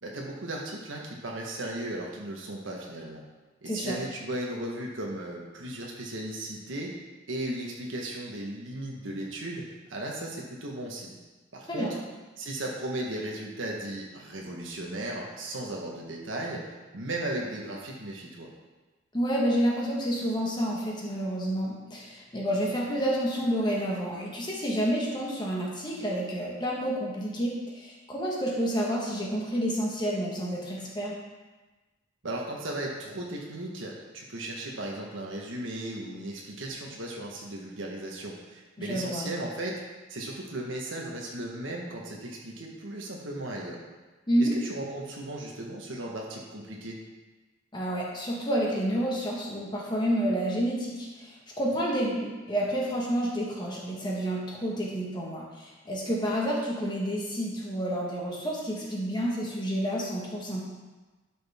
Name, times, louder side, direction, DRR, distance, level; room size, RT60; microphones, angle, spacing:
voice 1, 0.0-3.2 3.6-7.0 7.3-9.6 9.9-11.2 11.5-12.0 12.4-16.7 16.9-18.5 32.2-39.8 40.1-43.8 44.4-47.0, right 1 dB, 85° right, -2 dB, 1.4 m, -36 dB
voice 2, 3.6-4.0 11.7-11.9 19.1-31.1 38.8-39.3 44.3-44.5 47.7-60.6, equal, 25° left, -4 dB, 1.5 m, -29 dB
11.5 x 6.3 x 3.6 m, 1.2 s
head